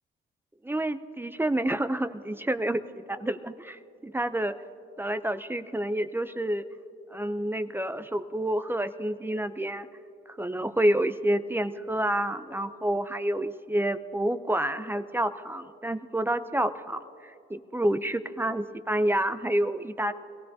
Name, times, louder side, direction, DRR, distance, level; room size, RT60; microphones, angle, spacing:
voice 1, 0.6-4.6 5.0-6.7 7.1-9.9 10.3-20.1, right 1 dB, 10° right, 11 dB, 0.5 m, -29 dB
24.0 x 16.0 x 2.7 m, 2.8 s
cardioid pair, 90°, 20 cm